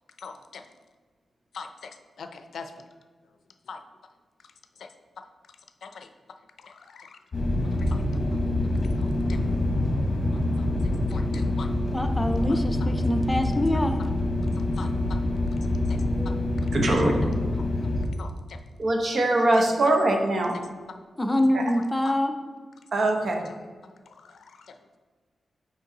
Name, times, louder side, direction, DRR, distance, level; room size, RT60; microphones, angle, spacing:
voice 1, 0.2-0.7 1.5-2.7 3.7-3.8 4.8-4.9 5.8-6.1 6.6-7.2 7.8-8.0 8.3-8.4 9.0-9.4 10.6-10.7 11.1-11.7 14.8-14.9 15.9-16.0 16.2-16.3 16.9-17.1 17.5-17.6 18.2-18.6 19.9-20.0 22.0-22.1 24.1-24.8, left 5 dB, 75° left, 7 dB, 0.4 m, -42 dB
sound 1, 7.3-18.1, left 1 dB, 40° left, 1.0 m, -26 dB
voice 2, 11.9-14.0 21.2-22.4, left 1 dB, 10° left, 6 dB, 0.4 m, -25 dB
voice 3, 16.7-17.2 18.8-20.6 21.5-21.6 22.9-23.4, right 2 dB, 50° right, 2 dB, 0.8 m, -22 dB
5.4 x 4.6 x 3.8 m, 1.5 s
wide cardioid pair, 150°, 0 cm